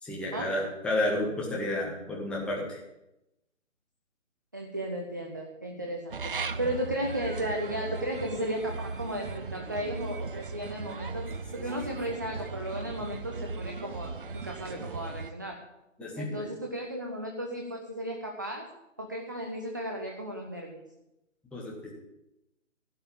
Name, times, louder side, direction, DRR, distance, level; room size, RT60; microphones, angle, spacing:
voice 1, 0.0-2.8 16.0-16.5 21.5-21.9, left 1 dB, 5° left, -4 dB, 1.5 m, -31 dB
voice 2, 4.5-6.2 6.6-11.3 11.5-15.6 16.2-18.7 19.0-20.8, right 1 dB, 15° right, 2 dB, 0.5 m, -35 dB
sound 1, 6.1-15.3, right 4 dB, 45° right, 0.8 m, -38 dB
16.0 x 5.5 x 8.7 m, 0.91 s
figure-of-eight pair, 150°, 39 cm